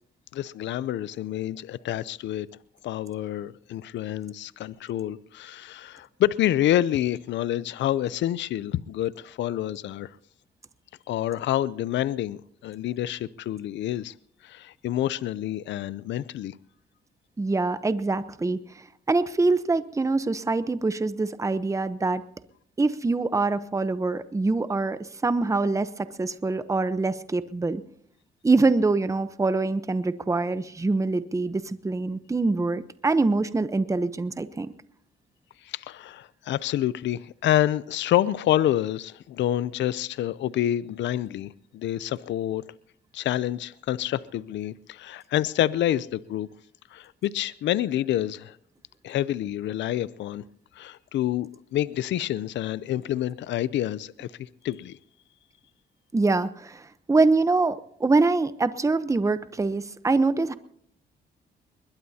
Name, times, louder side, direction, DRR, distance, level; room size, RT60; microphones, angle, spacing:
voice 1, 0.3-2.5 2.8-10.1 11.1-14.1 14.4-16.5 35.7-42.6 43.1-46.5 46.9-48.6 49.0-50.4 50.8-55.0, left 12 dB, 75° left, 0.5 m, -28 dB
voice 2, 17.4-18.6 19.1-22.2 22.8-27.8 28.4-34.7 56.1-56.8 57.1-60.5, right 3 dB, 15° right, 0.8 m, -24 dB
21.0 x 21.0 x 2.8 m
cardioid pair, 85°, 19 cm